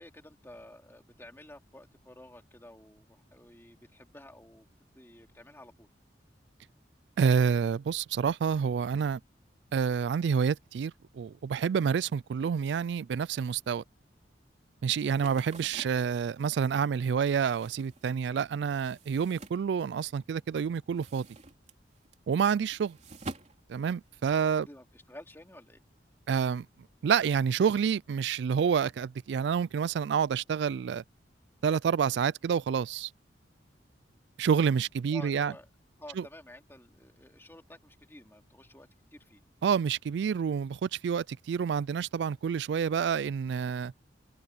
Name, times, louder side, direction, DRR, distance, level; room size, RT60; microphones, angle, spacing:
voice 1, 0.0-4.7 4.9-5.9 24.4-25.8 35.1-35.7 36.0-39.4, left 1 dB, 15° left, 2.9 m, -51 dB
voice 2, 7.2-9.2 9.7-13.8 14.8-21.3 22.3-23.0 23.7-24.7 26.3-26.7 27.0-31.0 31.6-33.1 34.4-35.5 36.2-36.3 39.6-43.9, right 7 dB, 70° right, 0.3 m, -28 dB
sound 1, 14.9-20.3 20.6-24.5, right 2 dB, 40° right, 3.3 m, -48 dB
head